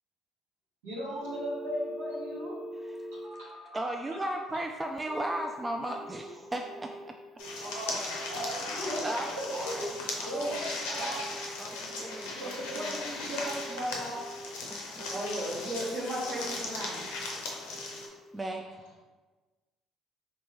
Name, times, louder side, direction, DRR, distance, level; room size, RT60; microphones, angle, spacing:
voice 1, 0.8-2.6 7.6-11.2 11.7-12.0 12.3-14.2, equal, 85° right, -7 dB, 1.2 m, -37 dB
Telephone, 1.2-4.5 5.1-5.5 5.7-7.1 7.4-7.8 8.1-11.5 11.9-12.3 12.6-14.6 15.0-15.9 16.2-16.6 17.0-17.4 17.7-18.1 18.5-18.6, right 1 dB, 65° right, 1.3 m, -45 dB
voice 2, 3.7-6.9 9.0-13.0 14.7-15.0 18.3-18.6, right 1 dB, 20° right, 3 dB, 0.3 m, -37 dB
sound 1, 7.4-18.1, left 3 dB, 75° left, 0.6 m, -38 dB
voice 3, 15.1-17.0, equal, 45° right, -3 dB, 1.2 m, -35 dB
3.1 x 3.0 x 3.3 m, 1.3 s
hypercardioid pair, 55°, 0 cm